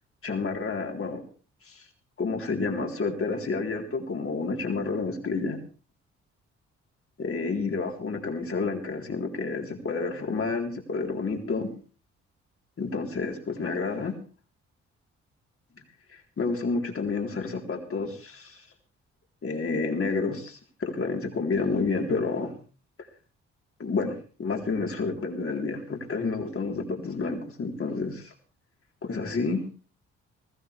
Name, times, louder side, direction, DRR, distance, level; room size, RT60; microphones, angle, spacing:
voice 1, 0.2-1.2 1.7-1.8 2.2-5.6 7.2-11.7 12.8-14.2 16.1-18.6 19.4-22.5 23.8-24.1 24.4-28.3 29.0-29.6, left 4 dB, 45° left, 2 dB, 3.7 m, -29 dB
19.5 x 15.0 x 3.4 m, 0.37 s
supercardioid pair, 55°, 30 cm